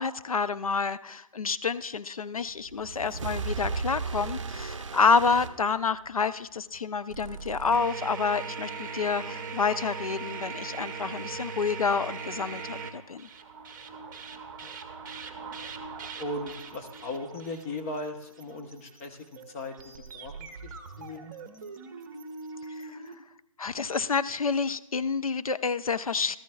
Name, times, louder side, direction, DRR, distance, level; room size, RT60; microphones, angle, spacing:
voice 1, 0.0-13.3 22.7-23.0 23.6-26.4, left 5 dB, 80° left, 13 dB, 0.5 m, -28 dB
sound 1, 2.5-6.3, right 4 dB, 60° right, 0.6 m, -35 dB
sound 2, 7.1-23.2, right 5 dB, 35° right, 0.9 m, -40 dB
voice 2, 16.2-19.7 20.1-21.3, left 2 dB, 25° left, 4 dB, 1.0 m, -38 dB
14.0 x 13.5 x 2.4 m, 0.85 s
figure-of-eight pair, 145°, 18 cm